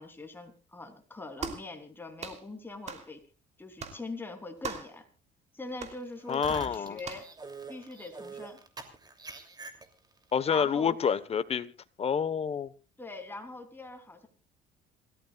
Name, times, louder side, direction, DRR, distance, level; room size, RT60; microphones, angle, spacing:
voice 1, 0.0-3.2 3.6-5.0 5.5-7.3 7.7-8.6 10.5-11.0 13.0-14.3, left 3 dB, 10° left, 3.2 m, -42 dB
sound 1, 1.4-1.7 2.2-2.4 2.9-3.1 3.8-4.0 4.6-5.0 5.8-6.0 7.0-7.3, right 5 dB, 40° right, 3.0 m, -39 dB
sound 2, 6.2-10.2, right 3 dB, 25° right, 2.9 m, -45 dB
voice 2, 6.3-7.0 10.3-11.7 12.0-12.7, left 7 dB, 35° left, 1.1 m, -28 dB
27.5 x 14.0 x 2.4 m
cardioid pair, 110°, 17 cm